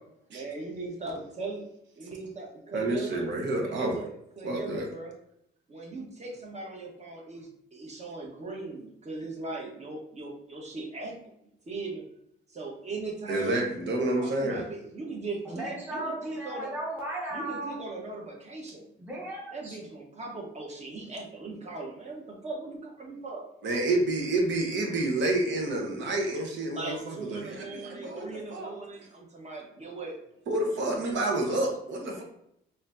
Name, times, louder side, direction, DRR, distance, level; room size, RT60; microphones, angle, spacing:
voice 1, 0.3-1.7 2.0-2.5 2.7-3.3 3.6-5.1 5.7-11.1 11.7-12.0 12.5-13.7 14.2-16.7 17.3-18.9 19.5-23.5 26.7-30.2, right 3 dB, 35° right, -1 dB, 1.1 m, -39 dB
voice 2, 2.7-4.0 4.4-4.9 13.3-14.6 23.6-28.8 30.5-32.2, right 2 dB, 65° right, 1 dB, 1.0 m, -29 dB
voice 3, 15.4-17.8 19.0-19.8, right 1 dB, 10° right, -5 dB, 0.9 m, -36 dB
4.2 x 2.7 x 2.6 m, 0.77 s
cardioid pair, 90°, 20 cm